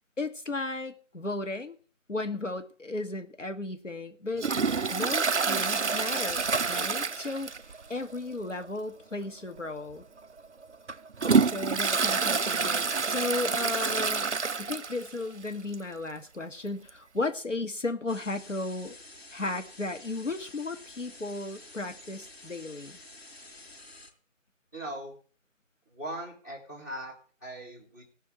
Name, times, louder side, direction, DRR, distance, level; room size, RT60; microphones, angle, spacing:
voice 1, 0.2-1.8 2.1-4.5 4.9-7.5 7.9-10.1 11.4-14.3 14.6-18.9 19.3-23.0, left 2 dB, 70° left, 6 dB, 2.0 m, -35 dB
Toilet flush, 4.4-7.8 8.1-8.2 8.6-8.7 9.6-9.7 10.2-15.1 15.5-15.6 15.7-15.8 16.9-17.0, right 5 dB, 60° right, 0.6 m, -27 dB
sound 1, 18.1-24.1, left 2 dB, 50° left, 5.3 m, -50 dB
voice 2, 24.7-25.2 25.9-28.0, right 1 dB, 15° left, 1 dB, 2.4 m, -40 dB
18.0 x 6.3 x 7.9 m, 0.42 s
figure-of-eight pair, 170°, 39 cm